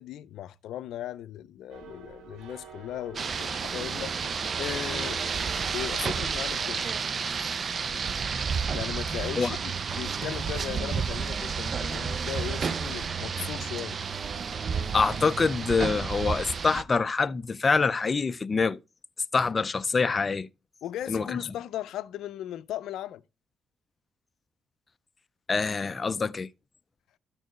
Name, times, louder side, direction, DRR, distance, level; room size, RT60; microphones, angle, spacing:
voice 1, 0.0-6.8 8.7-14.0 20.8-23.2, left 12 dB, 80° left, 0.5 m, -37 dB
sound 1, 1.7-6.7, right 5 dB, 90° right, 2.7 m, -48 dB
Rain, 3.1-16.8, right 6 dB, 45° right, 0.5 m, -31 dB
voice 2, 14.9-18.8 19.3-20.5 21.1-21.4 25.5-26.5, left 4 dB, 30° left, 0.5 m, -25 dB
13.0 x 4.4 x 3.1 m
cardioid pair, 90°, 0 cm